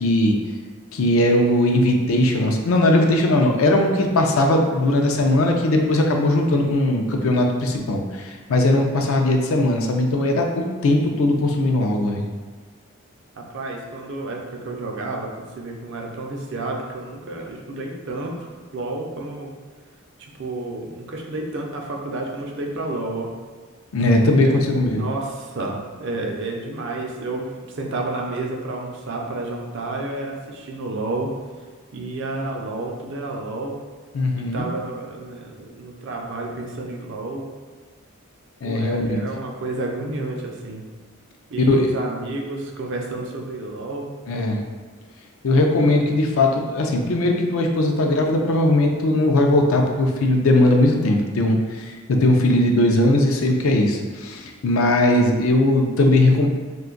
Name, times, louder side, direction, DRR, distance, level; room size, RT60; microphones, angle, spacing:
voice 1, 0.0-0.4 0.9-12.2 23.9-25.1 34.1-34.7 38.6-39.2 41.7-41.9 44.3-44.6 45.4-56.5, left 1 dB, 75° left, 2 dB, 0.4 m, -19 dB
voice 2, 13.4-19.5 20.2-23.3 24.4-24.6 24.9-27.5 27.7-31.3 31.9-33.8 34.4-37.5 38.6-40.8 41.5-44.1, right 2 dB, 60° right, 0 dB, 0.5 m, -30 dB
2.5 x 2.3 x 3.8 m, 1.4 s
head